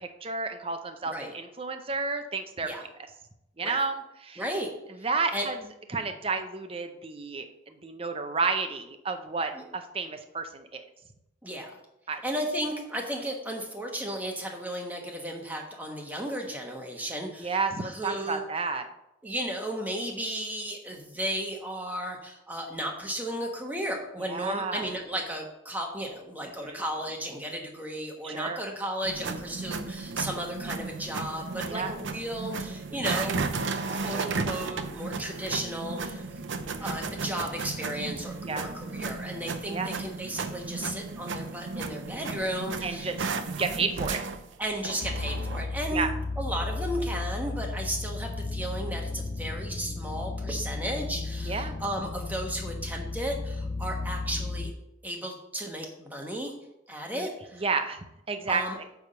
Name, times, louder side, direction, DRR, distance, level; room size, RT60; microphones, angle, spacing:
voice 1, 0.0-2.7 3.6-4.4 5.0-5.6 5.9-10.9 12.1-12.2 17.3-18.9 24.2-24.8 26.6-26.8 28.2-28.6 31.6-31.9 33.8-34.3 36.5-36.9 38.4-38.7 39.7-39.9 42.8-43.2 43.6-44.2 45.9-46.1 51.4-51.8 57.1-57.3 57.6-58.8, right 4 dB, 30° right, 7 dB, 0.7 m, -31 dB
voice 2, 4.4-4.7 5.3-5.5 9.5-9.6 11.4-11.8 12.2-18.4 19.2-33.4 33.9-36.3 36.8-43.1 44.6-46.1 46.4-54.7 55.0-56.5 56.9-57.6 58.5-58.8, right 1 dB, 10° right, 1 dB, 1.2 m, -34 dB
sound 1, 29.0-45.6, right 4 dB, 75° right, 0.6 m, -34 dB
sound 2, 45.0-54.7, left 3 dB, 30° left, 0.3 m, -34 dB
9.3 x 3.5 x 6.7 m, 0.86 s
head